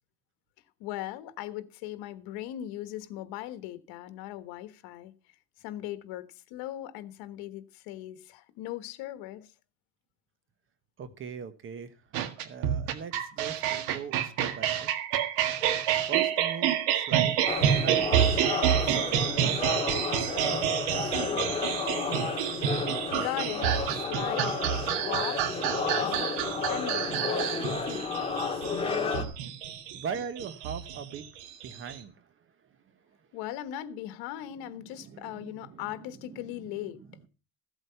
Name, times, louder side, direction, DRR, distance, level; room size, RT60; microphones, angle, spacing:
voice 1, 0.8-5.1 5.6-9.5 23.1-24.6 25.0-25.6 26.0-26.4 26.7-27.2 27.6-28.1 33.3-37.0, left 13 dB, 75° left, 1.4 m, -39 dB
voice 2, 11.0-11.9 12.4-14.9 16.1-17.4 17.8-18.0 19.1-19.5 20.4-20.7 21.1-21.6 29.9-31.2 31.6-32.3 34.6-36.9, right 6 dB, 35° right, 1.1 m, -41 dB
sound 1, 12.1-32.0, right 10 dB, 85° right, 1.9 m, -28 dB
sound 2, 17.5-29.2, left 5 dB, 15° left, 2.0 m, -32 dB
15.0 x 8.0 x 5.7 m
cardioid pair, 155°, 37 cm